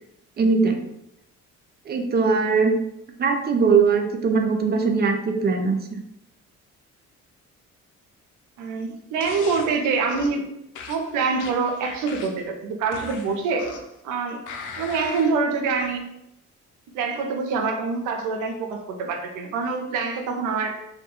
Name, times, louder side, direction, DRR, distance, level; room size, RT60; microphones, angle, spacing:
voice 1, 0.4-0.8 1.9-2.8 3.2-6.0, right 5 dB, 35° right, 4 dB, 0.4 m, -20 dB
voice 2, 8.6-10.5 10.9-13.7 14.0-14.4 14.8-16.1 16.9-20.8, right 4 dB, 90° right, 3 dB, 0.5 m, -25 dB
sound 1, 9.2-9.7 10.1-10.4 10.7-12.5 12.9-14.0 14.5-15.3 15.8-15.9, left 5 dB, 75° left, 0.5 m, -38 dB
2.2 x 2.2 x 2.9 m, 0.81 s
cardioid pair, 90°, 30 cm